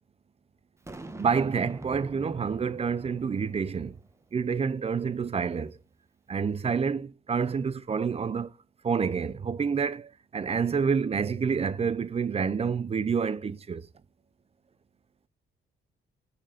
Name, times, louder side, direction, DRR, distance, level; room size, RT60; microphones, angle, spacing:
Boom, 0.9-4.2, right 2 dB, 15° right, 1.0 m, -44 dB
voice 1, 1.2-4.0 4.3-5.8 6.3-8.5 8.8-13.9, right 6 dB, 30° right, 0.6 m, -28 dB
6.0 x 4.4 x 4.0 m
cardioid pair, 90°, 20 cm